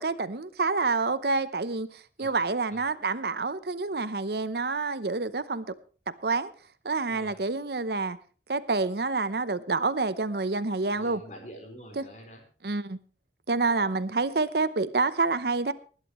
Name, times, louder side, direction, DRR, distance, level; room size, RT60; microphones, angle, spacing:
voice 1, 0.0-5.6 6.2-6.5 6.8-8.2 8.5-11.2 12.0-12.1 12.6-13.0 13.5-15.7, right 3 dB, 60° right, 0.8 m, -28 dB
voice 2, 10.8-12.4, equal, 40° left, 4.6 m, -46 dB
20.5 x 11.5 x 3.1 m
head